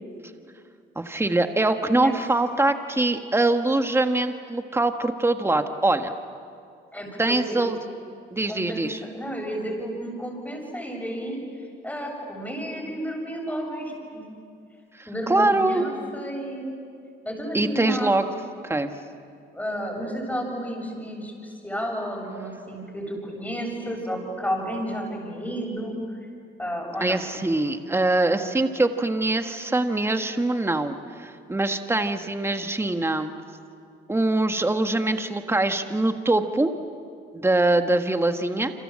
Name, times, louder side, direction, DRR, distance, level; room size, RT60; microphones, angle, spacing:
voice 1, 0.9-6.1 7.2-7.7 8.3-9.0 15.3-15.9 17.5-18.2 18.6-18.9 27.0-33.3 34.1-36.7 37.3-38.7, right 2 dB, 10° right, 7 dB, 1.6 m, -23 dB
voice 2, 6.9-7.7 8.5-8.8 9.1-11.4 11.8-14.2 15.1-16.7 17.2-18.1 19.5-26.2 26.6-27.2, equal, 10° left, 0 dB, 7.9 m, -32 dB
28.5 x 26.5 x 7.7 m, 2.3 s
cardioid pair, 90°, 20 cm